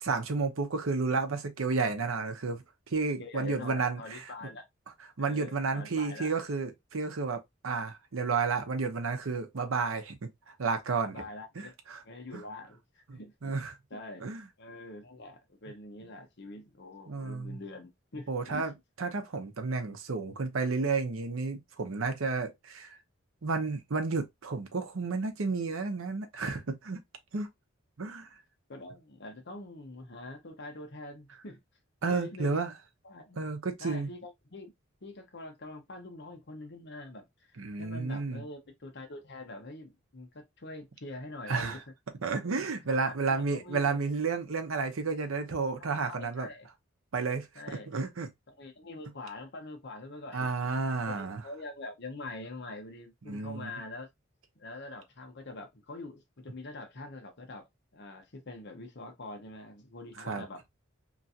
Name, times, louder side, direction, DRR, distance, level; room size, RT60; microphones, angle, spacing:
voice 1, 0.0-4.2 5.2-11.3 11.6-12.0 12.3-12.4 13.1-13.7 14.2-14.5 17.1-17.6 18.3-18.7 19.0-23.0 23.4-27.0 27.3-27.5 28.0-28.3 32.0-32.7 33.4-34.1 37.6-38.4 41.5-41.8 42.2-46.5 47.1-48.3 50.3-51.4 53.3-53.7 60.2-60.4, right 4 dB, 85° right, 0.7 m, -32 dB
voice 2, 3.2-4.6 5.2-6.3 11.1-11.7 12.0-13.6 13.9-14.2 14.6-18.7 28.7-31.6 32.0-32.5 33.0-33.4 33.8-34.7 35.0-37.3 37.8-41.8 42.9-43.9 45.8-46.7 47.5-47.9 48.6-50.5 51.2-54.1 54.6-60.6, left 2 dB, 55° left, 0.9 m, -44 dB
3.0 x 2.5 x 2.7 m
head